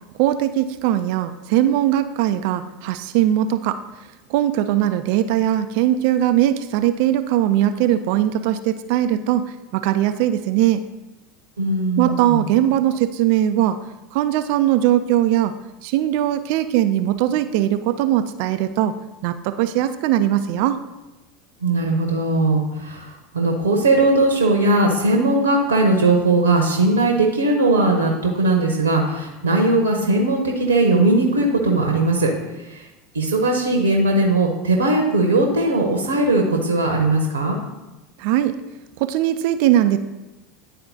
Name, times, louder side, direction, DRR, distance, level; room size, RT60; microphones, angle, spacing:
voice 1, 0.2-3.8 4.3-10.8 12.0-13.8 14.1-15.5 15.8-19.0 19.2-20.8 38.2-38.6 39.0-40.0, right 12 dB, 55° right, 10 dB, 0.3 m, -20 dB
voice 2, 11.6-12.4 21.6-32.3 32.6-32.9 33.1-37.5, right 2 dB, 75° right, 1 dB, 0.8 m, -19 dB
10.0 x 4.1 x 2.7 m, 1.0 s
figure-of-eight pair, 75°, 0 cm